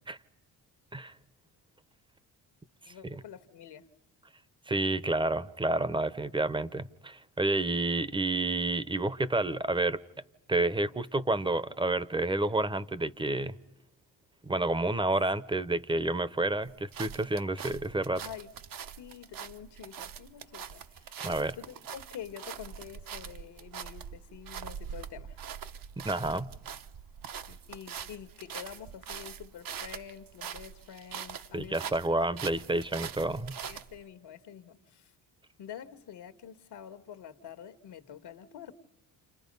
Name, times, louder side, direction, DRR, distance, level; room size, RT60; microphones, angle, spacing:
voice 1, 2.8-3.9 18.2-18.5 19.0-25.4 27.5-31.9 33.6-35.1 35.6-38.7, left 9 dB, 70° left, 1.6 m, -47 dB
voice 2, 4.7-10.0 10.5-13.5 14.4-18.2 21.2-21.6 26.0-26.5 31.5-33.6, right 2 dB, 10° right, 0.8 m, -29 dB
sound 1, 16.6-34.0, right 8 dB, 55° right, 1.0 m, -43 dB
30.0 x 29.0 x 5.4 m
cardioid pair, 100°, 41 cm